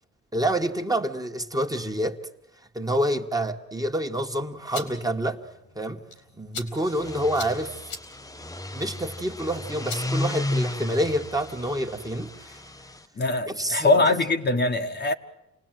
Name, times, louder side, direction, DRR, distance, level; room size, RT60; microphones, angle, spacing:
voice 1, 0.3-2.2 2.7-5.4 5.8-6.0 6.4-7.8 8.7-12.6 13.5-14.2, right 1 dB, 10° right, 1.8 m, -27 dB
sound 1, 4.5-11.0, left 4 dB, 85° left, 3.9 m, -43 dB
sound 2, 6.8-13.0, left 2 dB, 10° left, 0.9 m, -33 dB
voice 2, 13.2-15.1, left 2 dB, 35° left, 1.5 m, -22 dB
28.5 x 19.0 x 9.3 m
cardioid pair, 90°, 30 cm